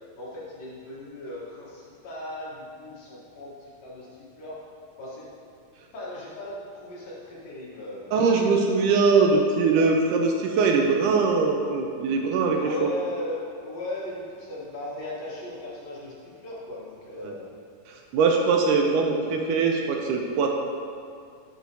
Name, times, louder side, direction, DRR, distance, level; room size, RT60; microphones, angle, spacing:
voice 1, 0.2-4.6 5.0-5.2 5.9-8.1 12.6-17.5 18.3-19.2, left 1 dB, 60° left, -6 dB, 2.2 m, -37 dB
voice 2, 8.1-12.9 17.2-17.3 18.1-20.5, right 4 dB, 80° right, 2 dB, 2.0 m, -22 dB
12.0 x 6.3 x 2.8 m, 2.3 s
omnidirectional pair, 3.9 m